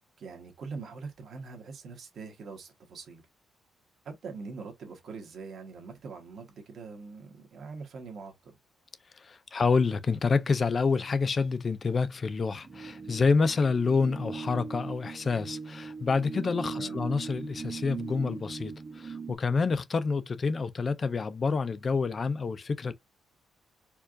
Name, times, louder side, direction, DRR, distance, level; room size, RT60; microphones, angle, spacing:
voice 1, 0.2-3.2 4.0-8.5 16.6-17.0, right 4 dB, 50° right, 1.1 m, -43 dB
voice 2, 9.2-22.9, left 4 dB, 30° left, 0.3 m, -28 dB
sound 1, 12.6-19.3, right 5 dB, 25° right, 0.5 m, -39 dB
4.4 x 2.3 x 2.5 m
cardioid pair, 170°, 0 cm